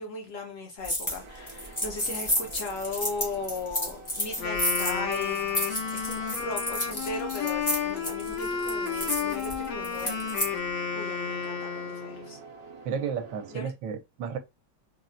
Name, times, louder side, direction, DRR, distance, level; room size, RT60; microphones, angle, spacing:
voice 1, 0.0-5.5 5.9-10.6 10.9-12.4 13.5-13.7, left 2 dB, 70° left, 0.7 m, -37 dB
sound 1, 0.8-1.2 1.5-10.5, left 1 dB, 20° left, 0.5 m, -31 dB
sound 2, 1.2-13.6, right 4 dB, 65° right, 1.0 m, -47 dB
Wind instrument woodwind instrument, 4.3-12.3, left 7 dB, 90° left, 1.6 m, -31 dB
voice 2, 12.8-14.4, right 7 dB, 80° right, 1.3 m, -32 dB
3.9 x 2.1 x 2.5 m
omnidirectional pair, 2.0 m